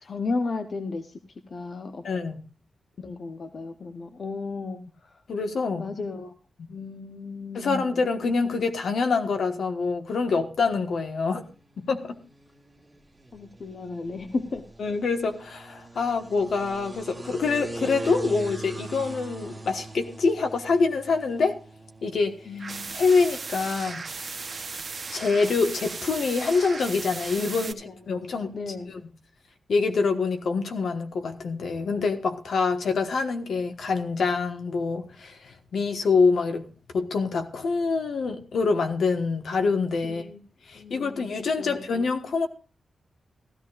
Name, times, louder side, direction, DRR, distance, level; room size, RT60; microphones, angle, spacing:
voice 1, 0.0-1.2 1.5-2.1 3.0-5.2 5.8-6.3 6.7-8.0 13.3-14.7 15.9-16.0 22.5-23.0 27.4-28.2 28.5-28.9 40.0-40.4 40.7-41.2 41.6-41.9, left 3 dB, 45° left, 8 dB, 0.9 m, -34 dB
voice 2, 2.0-2.4 5.3-5.9 7.5-11.4 11.8-12.2 14.8-21.6 22.0-22.4 22.9-24.0 25.1-28.5 28.9-29.0 29.7-40.2 40.7-42.5, left 4 dB, 70° left, 6 dB, 1.4 m, -25 dB
sound 1, 11.0-29.0, right 2 dB, 10° right, 1.3 m, -43 dB
sound 2, 22.6-27.7, right 4 dB, 35° right, 0.8 m, -36 dB
16.5 x 14.0 x 2.5 m, 0.35 s
wide cardioid pair, 170°, 0 cm